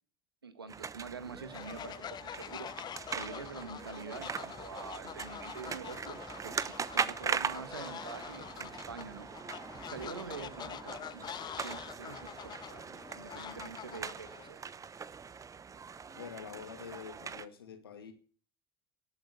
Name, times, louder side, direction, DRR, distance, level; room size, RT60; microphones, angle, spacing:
voice 1, 0.4-2.7 3.1-9.3 9.6-14.7, right 5 dB, 85° right, 1.5 m, -46 dB
sound 1, 0.7-17.5, right 6 dB, 25° right, 0.9 m, -41 dB
Fowl, 1.5-14.5, left 9 dB, 35° left, 0.6 m, -46 dB
sound 2, 3.5-10.7, right 5 dB, 55° right, 6.9 m, -58 dB
voice 2, 16.1-18.1, left 7 dB, 80° left, 2.1 m, -46 dB
18.5 x 8.8 x 6.7 m
figure-of-eight pair, 65°, 12 cm